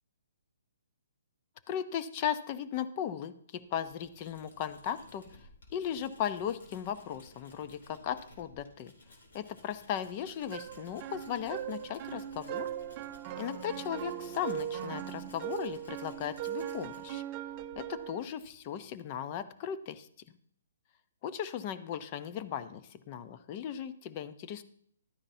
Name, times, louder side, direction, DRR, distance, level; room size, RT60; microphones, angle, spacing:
voice 1, 1.7-8.9 9.3-12.7 13.4-17.2 17.8-20.1 21.2-24.6, left 9 dB, 35° left, 13 dB, 0.6 m, -37 dB
Tools, 3.6-18.9, left 2 dB, 70° left, 3.0 m, -57 dB
sound 1, 10.5-18.2, right 11 dB, 30° right, 0.5 m, -39 dB
12.0 x 9.8 x 2.7 m, 0.64 s
hypercardioid pair, 145°, 0 cm